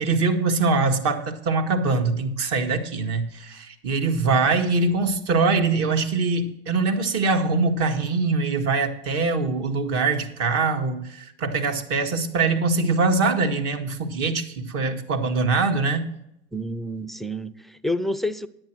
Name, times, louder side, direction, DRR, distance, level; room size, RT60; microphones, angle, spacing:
voice 1, 0.0-16.1, right 3 dB, 50° right, 1.5 m, -23 dB
voice 2, 16.5-18.5, left 1 dB, ahead, 0.4 m, -29 dB
10.5 x 8.9 x 4.4 m
hypercardioid pair, 95°, 32 cm